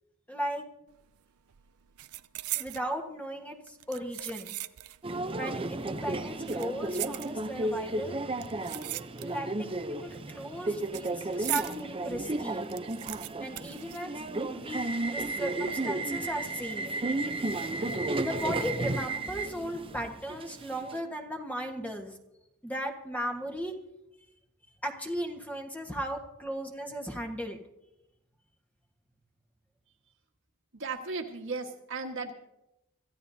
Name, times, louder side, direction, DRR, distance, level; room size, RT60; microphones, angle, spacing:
voice 1, 0.3-0.6 2.5-4.6 5.4-8.2 9.2-12.7 13.4-14.2 14.5-14.8 15.1-16.9 17.8-17.9 18.2-22.1 22.6-23.7 24.8-27.6, equal, 5° left, 2 dB, 1.5 m, -36 dB
sound 1, 0.9-1.2 1.5-2.9 3.7-5.1 5.4-5.5 6.3-7.7 8.4-9.6 9.9-11.8 12.2-12.3 12.5-14.6 14.9-15.0 15.7-16.1 16.5-16.7, right 16 dB, 85° right, 0.5 m, -39 dB
Subway metro underground, 5.0-21.0, right 2 dB, 25° right, 0.7 m, -33 dB
voice 2, 30.7-32.3, right 4 dB, 60° right, 3 dB, 1.7 m, -36 dB
26.0 x 14.5 x 2.8 m, 0.88 s
head